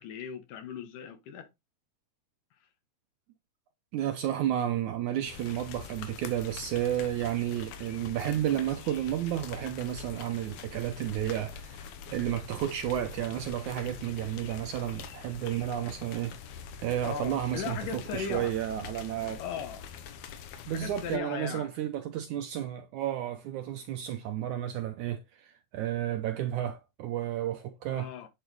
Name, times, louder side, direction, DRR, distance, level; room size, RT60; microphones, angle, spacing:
voice 1, 0.0-1.5 17.0-18.6 19.4-19.9 20.7-21.7 27.9-28.3, left 7 dB, 70° left, 2.6 m, -38 dB
voice 2, 3.9-16.6 16.8-19.4 20.7-28.1, right 11 dB, 75° right, 1.8 m, -32 dB
sound 1, 5.3-21.2, left 7 dB, 85° left, 3.0 m, -44 dB
9.0 x 7.2 x 3.2 m
omnidirectional pair, 4.3 m